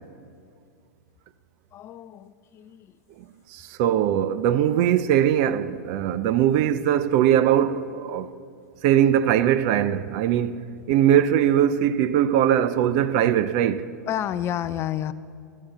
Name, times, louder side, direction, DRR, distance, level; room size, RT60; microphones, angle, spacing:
voice 1, 1.7-2.9 14.1-15.1, left 11 dB, 25° left, 0.5 m, -30 dB
voice 2, 3.5-8.3 8.8-13.9, right 10 dB, 45° right, 0.6 m, -21 dB
14.0 x 13.0 x 7.4 m
figure-of-eight pair, 100°, 10 cm